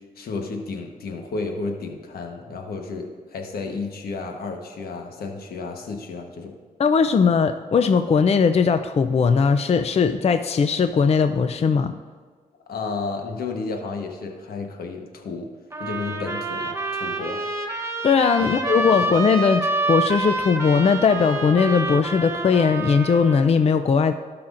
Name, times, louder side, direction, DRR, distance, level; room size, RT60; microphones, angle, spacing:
voice 1, 0.2-6.5 12.7-15.5 15.8-17.4 18.8-18.9, left 4 dB, 80° left, 3 dB, 1.2 m, -32 dB
voice 2, 6.8-12.0 18.0-24.1, left 5 dB, 45° left, 9 dB, 0.4 m, -19 dB
sound 1, 15.7-23.5, right 2 dB, 15° right, 0.9 m, -27 dB
16.5 x 5.9 x 2.5 m, 1.6 s
cardioid pair, 75°, 16 cm